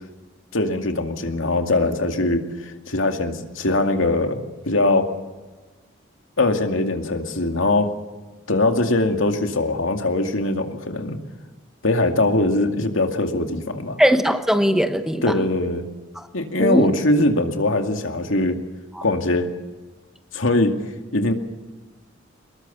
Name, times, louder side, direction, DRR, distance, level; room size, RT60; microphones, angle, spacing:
voice 1, 0.5-4.4 4.7-5.1 6.4-7.9 8.5-11.2 11.8-14.0 15.2-15.9 16.3-18.6 19.0-19.5 20.3-20.7 21.1-21.3, left 2 dB, 85° left, 5 dB, 2.3 m, -21 dB
voice 2, 14.0-15.5 16.2-16.3 16.6-16.9 18.9-19.0, equal, ahead, 8 dB, 1.1 m, -20 dB
25.0 x 21.0 x 7.0 m, 1.3 s
head